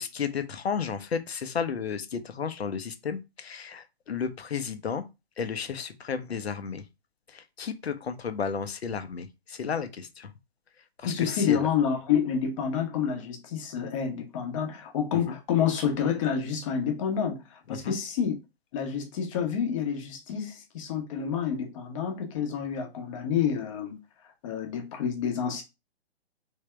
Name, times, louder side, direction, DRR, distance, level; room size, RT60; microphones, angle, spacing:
voice 1, 0.0-5.0 5.4-6.8 7.3-10.3 11.0-11.7 15.3-15.4 17.7-17.9, left 6 dB, 75° left, 0.7 m, -33 dB
voice 2, 11.0-18.4 18.7-24.0 24.4-25.6, left 7 dB, 30° left, 0.9 m, -28 dB
3.4 x 2.8 x 3.2 m
figure-of-eight pair, 135°, 32 cm